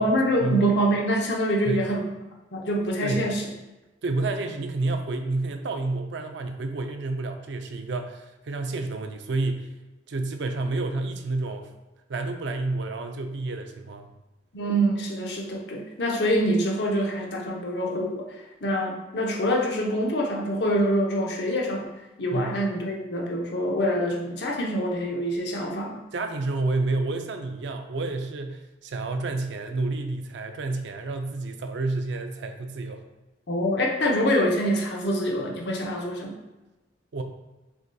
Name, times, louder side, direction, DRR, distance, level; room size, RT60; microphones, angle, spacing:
voice 1, 0.0-2.1 2.5-3.5 14.5-18.2 18.6-21.9 22.2-26.0 33.5-36.4, equal, 55° left, 0 dB, 0.7 m, -25 dB
voice 2, 4.0-9.7 10.1-11.7 12.1-14.1 22.3-22.6 26.1-33.0 37.1-37.2, right 2 dB, 65° right, 6 dB, 0.4 m, -29 dB
6.2 x 2.7 x 2.2 m, 1.1 s
head